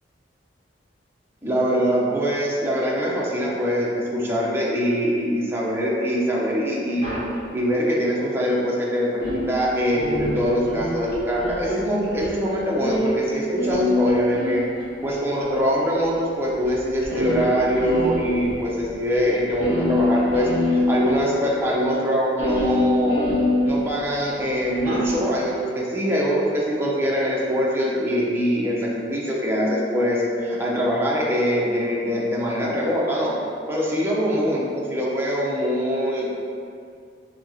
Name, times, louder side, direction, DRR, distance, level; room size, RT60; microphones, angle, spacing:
voice 1, 1.4-7.2 7.5-14.6 15.0-23.3 23.6-33.3 33.7-36.3, equal, 15° right, -5 dB, 0.6 m, -23 dB
sound 1, 7.0-7.3 9.2-13.3 13.6-15.1 16.0-16.1 16.6-16.7 17.0-18.5 18.8-18.9 19.1-19.2 19.5-21.2 22.4-24.1 24.7-25.1, left 1 dB, 90° left, 1.3 m, -25 dB
5.7 x 2.8 x 2.7 m, 2.3 s
head